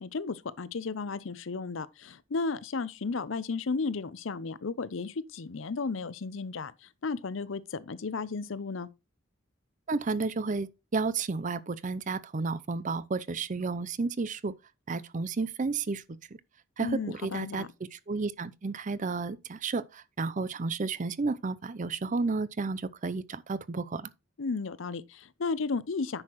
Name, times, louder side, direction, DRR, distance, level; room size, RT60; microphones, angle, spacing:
voice 1, 0.0-8.9 16.8-17.7 24.4-26.2, left 4 dB, 70° left, 0.6 m, -34 dB
voice 2, 9.9-14.5 14.9-16.2 16.8-17.6 17.9-24.1, right 4 dB, 40° right, 0.5 m, -32 dB
9.7 x 6.5 x 3.0 m
head